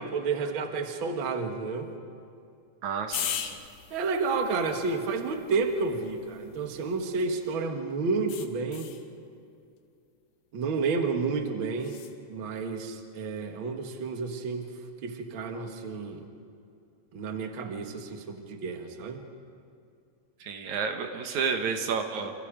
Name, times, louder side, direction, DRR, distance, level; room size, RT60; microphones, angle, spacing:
voice 1, 0.0-1.9 3.9-8.9 10.5-12.0 12.3-14.7 15.0-16.2 17.1-19.2, right 4 dB, 50° right, 4 dB, 2.1 m, -30 dB
voice 2, 2.8-3.6 20.4-22.3, right 6 dB, 75° right, 5 dB, 2.7 m, -31 dB
sound 1, 3.1-7.5 8.3-9.1 11.8-12.2, left 9 dB, 85° left, 2.6 m, -39 dB
28.5 x 27.5 x 5.1 m, 2.5 s
omnidirectional pair, 3.4 m